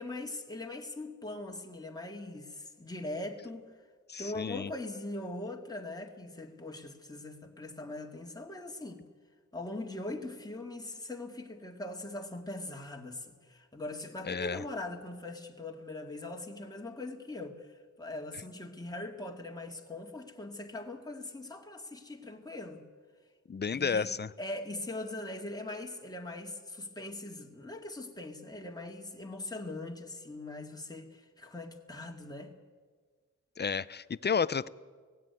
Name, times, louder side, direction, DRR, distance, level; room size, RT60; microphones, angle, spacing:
voice 1, 0.0-3.7 4.2-9.0 9.5-22.8 23.7-24.1 24.4-32.5, left 2 dB, 10° left, 1 dB, 2.1 m, -41 dB
voice 2, 4.1-4.7 14.2-14.6 23.5-24.3 33.6-34.7, left 6 dB, 35° left, 19 dB, 0.6 m, -31 dB
17.5 x 16.5 x 9.5 m, 1.5 s
wide cardioid pair, 80°, 31 cm